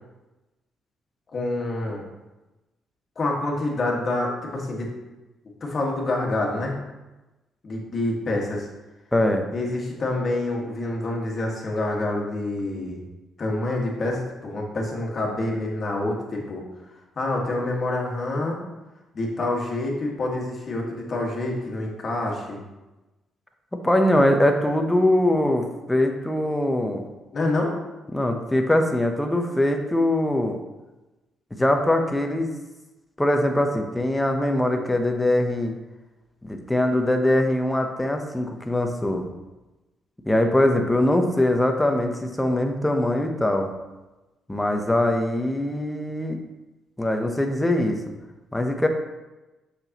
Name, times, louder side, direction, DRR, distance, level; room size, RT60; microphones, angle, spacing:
voice 1, 1.3-2.0 3.1-4.9 5.6-6.8 7.6-8.7 9.5-13.0 13.4-16.6 17.1-18.6 19.1-22.6 27.3-27.7, left 2 dB, 45° left, -1 dB, 1.7 m, -27 dB
voice 2, 9.1-9.5 23.8-27.0 28.1-30.6 31.5-32.5 33.2-35.7 36.4-39.2 40.3-43.7 44.5-46.4 47.0-48.0 48.5-48.9, left 1 dB, 10° left, 4 dB, 0.9 m, -22 dB
6.5 x 5.9 x 3.0 m, 1.1 s
cardioid pair, 90°, 0 cm